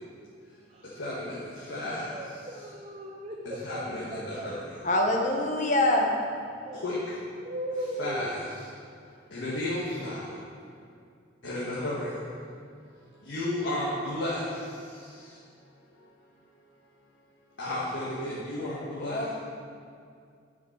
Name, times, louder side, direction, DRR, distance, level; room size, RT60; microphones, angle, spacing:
voice 1, 1.0-1.4 1.7-2.1 3.5-4.6 6.8-7.0 8.0-8.4 9.3-10.2 11.4-12.1 13.3-14.4 17.6-19.2, left 1 dB, 70° left, -9 dB, 1.8 m, -32 dB
voice 2, 1.6-3.8 4.1-4.5 6.7-6.8 7.4-8.4, right 1 dB, 30° right, 0 dB, 0.6 m, -38 dB
voice 3, 4.8-6.1 19.0-19.3, left 1 dB, 40° left, 1 dB, 1.0 m, -25 dB
8.6 x 5.9 x 6.1 m, 2.3 s
head